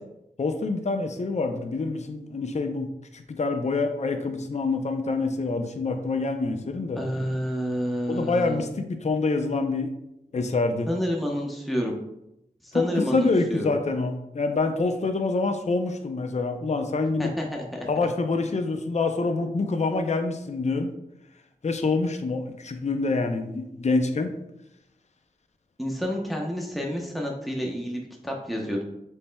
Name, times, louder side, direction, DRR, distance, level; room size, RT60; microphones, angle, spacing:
voice 1, 0.4-7.0 8.1-9.9 10.3-10.9 12.7-17.3 17.9-20.9 21.6-24.3, left 3 dB, 45° left, 6 dB, 0.5 m, -26 dB
voice 2, 7.0-8.7 10.9-11.9 12.6-13.7 17.2-17.9 25.8-28.8, equal, ahead, -1 dB, 0.9 m, -29 dB
6.9 x 3.3 x 2.2 m, 0.85 s
cardioid pair, 40°, 17 cm